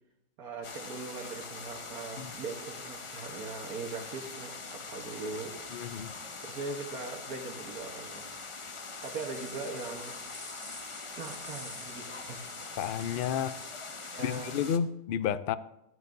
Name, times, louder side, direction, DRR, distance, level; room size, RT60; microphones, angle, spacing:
voice 1, 0.4-5.6 6.5-8.3 9.0-10.1 11.2-12.4 14.0-14.6, right 3 dB, 85° right, 0 dB, 1.7 m, -40 dB
sound 1, 0.6-14.8, left 4 dB, 35° left, 0.5 m, -43 dB
voice 2, 5.7-6.1 12.8-13.5 14.2-15.6, left 8 dB, 90° left, 14 dB, 0.4 m, -31 dB
sound 2, 8.9-14.4, equal, 5° left, 2.1 m, -50 dB
14.5 x 11.0 x 2.6 m, 0.89 s
omnidirectional pair, 1.5 m